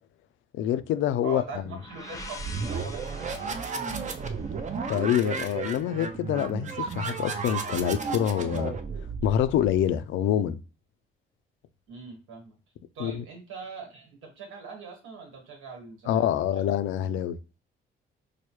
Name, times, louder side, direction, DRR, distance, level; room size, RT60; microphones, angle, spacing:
voice 1, 0.6-1.4 4.9-8.8 9.2-10.6 13.0-13.2 16.1-17.4, left 10 dB, 80° left, 0.4 m, -26 dB
voice 2, 1.2-4.5 11.9-12.6 12.9-16.6, right 5 dB, 85° right, 1.4 m, -42 dB
sound 1, 1.4-5.3, left 3 dB, 15° left, 0.6 m, -46 dB
sound 2, 2.1-9.8, right 5 dB, 40° right, 0.5 m, -33 dB
4.7 x 2.1 x 3.0 m
cardioid pair, 90°, 20 cm